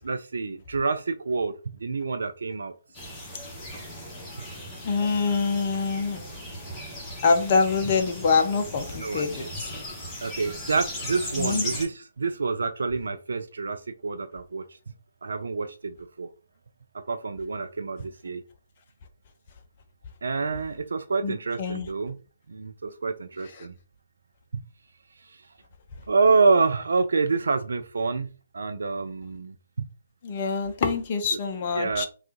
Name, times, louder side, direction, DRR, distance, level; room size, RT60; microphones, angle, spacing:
voice 1, 0.0-1.5 1.8-2.7 9.0-9.5 10.2-14.6 15.2-16.3 17.1-18.4 20.2-22.2 22.5-23.7 24.5-24.6 25.3-25.4 26.1-29.5 31.8-32.0, right 4 dB, 70° right, 0.3 m, -27 dB
sound 1, 2.9-11.9, equal, 15° left, 1.2 m, -37 dB
voice 2, 4.8-6.2 7.2-9.5 11.4-11.6 21.2-21.9 30.2-32.1, left 4 dB, 40° left, 0.6 m, -25 dB
3.5 x 2.3 x 2.8 m
figure-of-eight pair, 140°, 0 cm